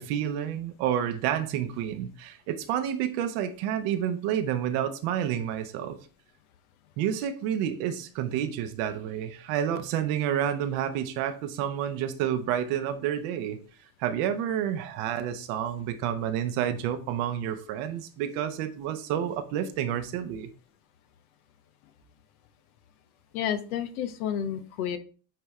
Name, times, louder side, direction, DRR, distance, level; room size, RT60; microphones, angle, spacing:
voice 1, 0.0-6.0 7.0-13.6 14.0-20.5, right 10 dB, 75° right, 1.0 m, -29 dB
voice 2, 23.3-25.0, left 9 dB, 85° left, 0.9 m, -30 dB
8.8 x 3.5 x 3.2 m
supercardioid pair, 80°, 42 cm